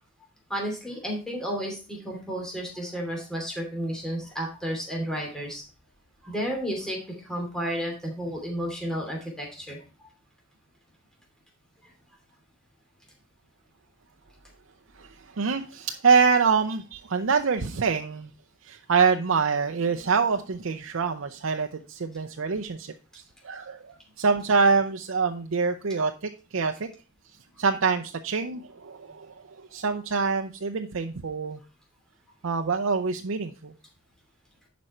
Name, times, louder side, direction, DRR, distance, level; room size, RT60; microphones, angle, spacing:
voice 1, 0.5-5.6 6.2-10.1 11.8-11.9, equal, 5° left, 0 dB, 2.7 m, -32 dB
voice 2, 15.4-18.3 18.6-22.9 23.4-26.1 26.5-26.9 27.6-29.3 29.7-31.6 32.4-33.7, right 5 dB, 90° right, 6 dB, 0.6 m, -25 dB
11.0 x 5.2 x 4.3 m, 0.33 s
head